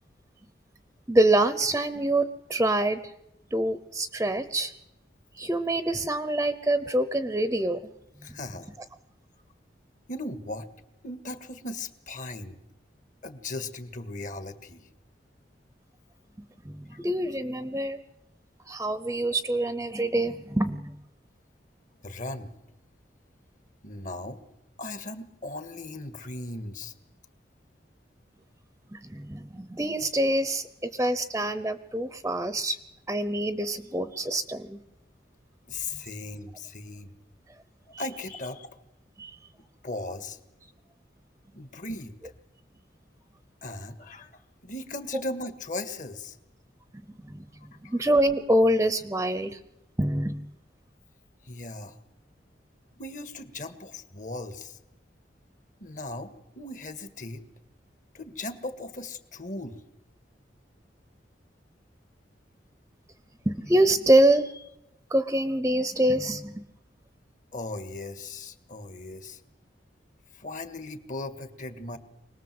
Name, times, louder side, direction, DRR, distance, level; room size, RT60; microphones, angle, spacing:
voice 1, 1.1-3.1 3.5-4.7 5.4-7.9 8.3-8.4 16.6-18.0 18.7-21.0 28.9-32.8 33.1-34.8 39.2-39.3 47.2-47.5 47.8-49.6 50.0-50.5 63.5-64.6 65.1-66.6, right 1 dB, 15° right, 12 dB, 0.8 m, -25 dB
voice 2, 8.2-8.8 10.1-10.7 11.0-12.6 13.2-14.9 16.9-17.0 22.0-22.5 23.8-24.4 24.8-26.9 35.7-37.1 38.0-38.7 39.8-40.4 41.6-42.3 43.6-44.3 44.6-46.4 47.6-48.0 51.4-52.0 53.0-54.8 55.8-57.4 58.1-59.8 67.5-69.4 70.3-72.0, left 2 dB, 45° left, 10 dB, 1.8 m, -38 dB
25.5 x 19.5 x 7.9 m, 0.88 s
head